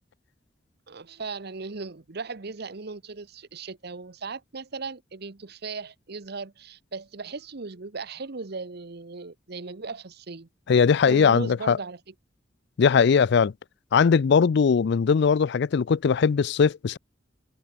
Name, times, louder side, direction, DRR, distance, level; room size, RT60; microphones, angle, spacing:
voice 1, 0.9-10.5 11.1-12.1, right 4 dB, 60° right, 1.0 m, -37 dB
voice 2, 10.7-11.8 12.8-13.5 13.9-17.0, left 6 dB, 65° left, 0.4 m, -20 dB
head